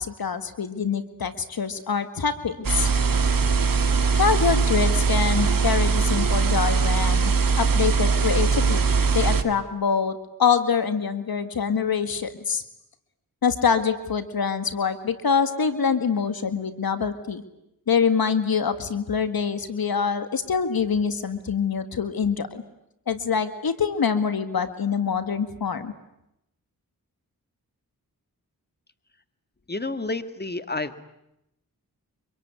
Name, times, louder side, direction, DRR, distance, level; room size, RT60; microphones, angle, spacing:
voice 1, 0.0-2.9 4.2-8.9 9.1-12.6 13.4-17.4 17.9-22.6 23.1-25.9, left 6 dB, 75° left, 11 dB, 2.0 m, -25 dB
sound 1, 2.6-9.4, right 5 dB, 65° right, 2.4 m, -21 dB
voice 2, 29.7-31.0, left 2 dB, 25° left, 11 dB, 2.1 m, -30 dB
25.5 x 24.0 x 9.6 m, 0.83 s
cardioid pair, 40°, 37 cm